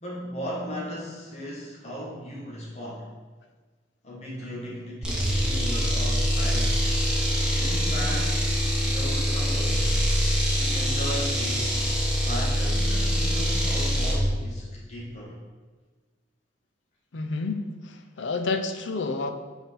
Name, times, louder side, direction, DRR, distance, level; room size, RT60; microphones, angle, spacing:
voice 1, 0.0-3.1 4.0-6.8 7.4-9.9 10.5-11.7 12.2-15.4, equal, 35° left, -6 dB, 1.7 m, -36 dB
sound 1, 5.0-14.2, equal, 5° right, 1.3 m, -24 dB
voice 2, 17.1-19.3, left 3 dB, 70° left, 7 dB, 0.6 m, -29 dB
5.5 x 4.6 x 5.7 m, 1.4 s
head